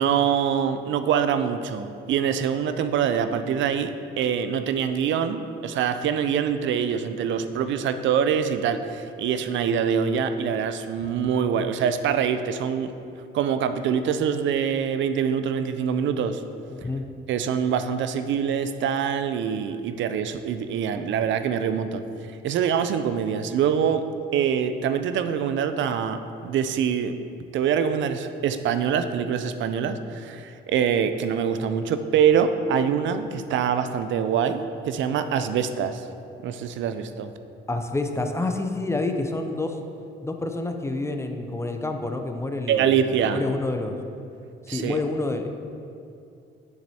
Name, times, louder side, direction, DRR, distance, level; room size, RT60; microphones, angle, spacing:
voice 1, 0.0-12.9 13.3-16.4 17.3-24.0 24.3-27.1 27.5-36.0 36.4-37.3 42.7-43.4 44.7-45.0, right 7 dB, 70° right, 10 dB, 0.4 m, -24 dB
voice 2, 16.7-17.1 37.7-39.8 40.2-44.0 44.7-45.5, left 2 dB, 15° left, 5 dB, 0.5 m, -28 dB
7.2 x 6.0 x 2.8 m, 2.6 s
cardioid pair, 90°, 20 cm